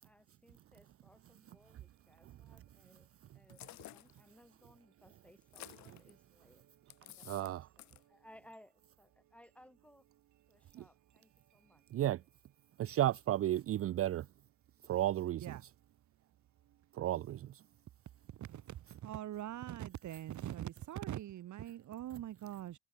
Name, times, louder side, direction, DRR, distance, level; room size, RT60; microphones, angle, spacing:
voice 1, 0.0-3.6 3.9-6.6 7.0-10.1 10.5-12.3, left 1 dB, 5° left, 6.3 m, -63 dB
sound 1, 3.5-4.2 5.4-6.1 6.9-7.5 7.8-8.0, left 16 dB, 65° left, 0.5 m, -52 dB
voice 2, 7.3-7.6 10.7-10.8 11.9-12.2 12.8-14.3 14.8-15.6 16.9-17.6, right 13 dB, 50° right, 0.5 m, -33 dB
voice 3, 19.0-22.7, right 12 dB, 70° right, 1.8 m, -42 dB
cardioid pair, 90°, 30 cm